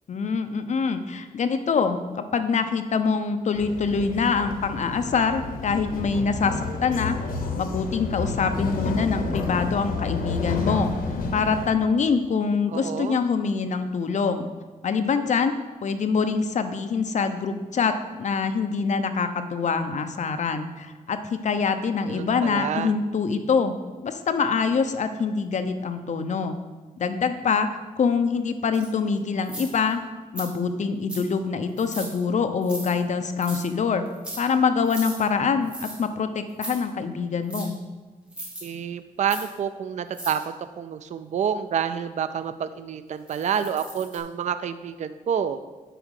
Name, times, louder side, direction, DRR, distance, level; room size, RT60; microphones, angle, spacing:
voice 1, 0.1-7.2 7.6-10.9 11.3-14.5 14.8-15.5 15.8-23.8 24.0-26.5 27.0-27.7 28.0-30.0 30.3-34.0 34.4-37.7, left 5 dB, 55° left, 8 dB, 0.7 m, -25 dB
sound 1, 3.6-11.7, left 3 dB, 85° left, 1.1 m, -30 dB
voice 2, 12.7-13.2 22.1-23.0 38.6-45.6, right 8 dB, 55° right, 11 dB, 0.4 m, -28 dB
sound 2, 28.7-28.9 29.4-29.9 30.4-30.5 31.1-31.3 31.8-32.1 32.6-32.9 33.4-33.6 34.1-34.4 34.8-35.2 35.7-36.0 36.5-36.8 37.5-37.6 38.3-38.6 39.2-39.5 40.1-40.4 43.3-44.2, right 1 dB, 5° right, 2.0 m, -37 dB
9.0 x 4.9 x 6.4 m, 1.3 s
wide cardioid pair, 135°, 14 cm